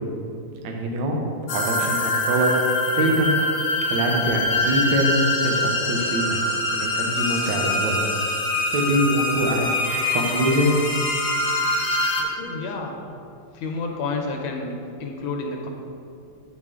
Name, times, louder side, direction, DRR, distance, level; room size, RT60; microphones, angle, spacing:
voice 1, 0.6-1.2 1.5-2.5 2.9-3.4 3.9-6.4 6.7-8.0 8.7-9.7 10.1-10.7, right 1 dB, 70° right, 1 dB, 1.5 m, -24 dB
sound 1, 1.5-12.2, left 2 dB, 60° left, 1.2 m, -24 dB
voice 2, 12.1-13.0 13.5-15.7, left 3 dB, 85° left, 2 dB, 1.5 m, -30 dB
8.6 x 4.5 x 3.6 m, 2.5 s
omnidirectional pair, 2.2 m